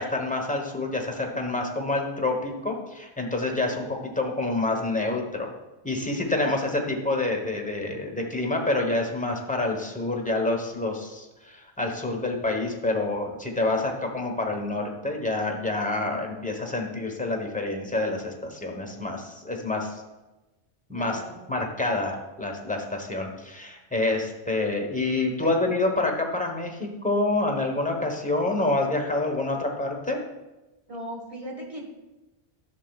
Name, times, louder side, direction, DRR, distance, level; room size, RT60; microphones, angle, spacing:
voice 1, 0.0-5.5 5.8-20.0 20.9-21.2 21.5-30.2, left 2 dB, 5° left, 1 dB, 0.9 m, -27 dB
voice 2, 20.9-21.4 25.4-25.5 30.9-31.8, right 1 dB, 30° right, -1 dB, 1.5 m, -37 dB
11.0 x 6.7 x 2.4 m, 1.1 s
omnidirectional pair, 1.2 m